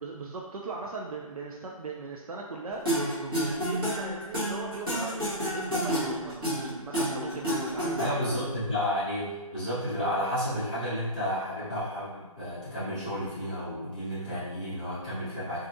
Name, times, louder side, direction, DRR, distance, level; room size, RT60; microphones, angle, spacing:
voice 1, 0.0-2.9 3.2-8.4, right 3 dB, 80° right, -2 dB, 0.4 m, -39 dB
sound 1, 2.9-8.4, equal, 40° right, 1.1 m, -29 dB
voice 2, 8.0-15.7, equal, 15° left, -15 dB, 0.6 m, -31 dB
2.6 x 2.4 x 2.6 m, 1.2 s
hypercardioid pair, 180°, 18 cm